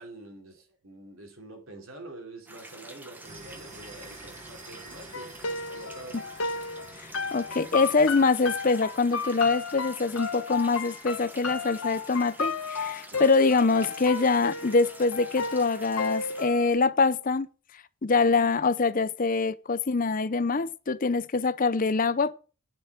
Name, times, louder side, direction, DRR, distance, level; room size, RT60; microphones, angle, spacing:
voice 1, 0.0-5.3 5.7-6.2 13.1-13.4, right 2 dB, 65° right, 3.3 m, -46 dB
sound 1, 2.5-16.5, right 1 dB, 10° right, 1.2 m, -48 dB
sound 2, 3.2-8.2, right 3 dB, 30° right, 1.3 m, -49 dB
sound 3, 5.1-16.7, left 4 dB, 75° left, 1.4 m, -33 dB
voice 2, 7.0-17.5 18.0-22.3, left 4 dB, 40° left, 0.6 m, -24 dB
10.0 x 6.8 x 6.0 m
head